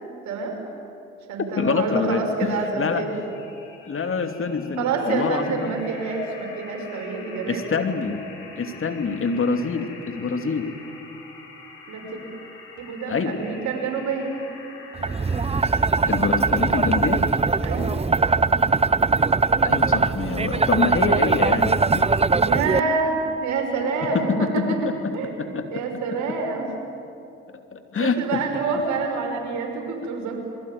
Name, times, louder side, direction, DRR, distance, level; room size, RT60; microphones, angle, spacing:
voice 1, 0.2-0.6 1.3-3.1 4.8-7.6 11.9-12.1 12.8-14.4 17.6-17.9 22.4-24.8 25.1-26.7 28.0-30.3, right 4 dB, 70° right, 2 dB, 5.9 m, -27 dB
voice 2, 1.6-3.0 3.9-5.8 7.5-8.2 8.6-10.7 13.1-13.4 16.1-17.3 19.6-22.1 24.0-25.8 27.7-28.4, left 4 dB, 45° left, 6 dB, 2.7 m, -26 dB
sound 1, 2.9-17.5, left 4 dB, 90° left, 4.0 m, -45 dB
sound 2, 15.0-22.8, right 4 dB, 20° right, 1.0 m, -21 dB
27.5 x 23.0 x 9.5 m, 2.8 s
hypercardioid pair, 50°, 30 cm